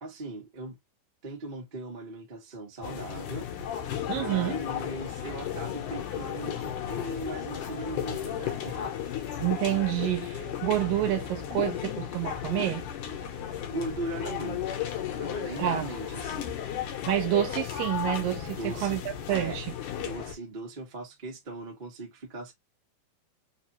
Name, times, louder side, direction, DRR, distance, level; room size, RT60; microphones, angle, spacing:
voice 1, 0.0-0.8 1.2-3.5 4.1-9.2 13.5-14.8 15.1-16.5 18.5-19.0 19.3-19.6 20.0-22.5, right 2 dB, 50° right, 0.5 m, -39 dB
sound 1, 2.8-20.3, left 9 dB, 70° left, 2.3 m, -34 dB
voice 2, 4.1-4.6 9.4-12.9 15.6-15.9 17.1-19.0 19.3-19.7, right 13 dB, 75° right, 2.4 m, -28 dB
5.8 x 2.7 x 2.9 m
omnidirectional pair, 4.4 m